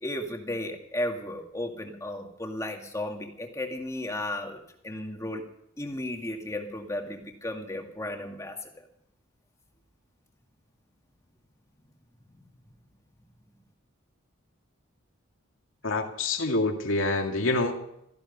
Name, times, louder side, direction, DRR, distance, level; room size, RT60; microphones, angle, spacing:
voice 1, 0.0-5.4 5.8-8.9 12.3-12.5, left 1 dB, 15° left, 3 dB, 2.1 m, -34 dB
voice 2, 15.8-17.7, left 2 dB, 75° left, 3 dB, 2.4 m, -26 dB
17.0 x 14.5 x 5.4 m, 0.78 s
head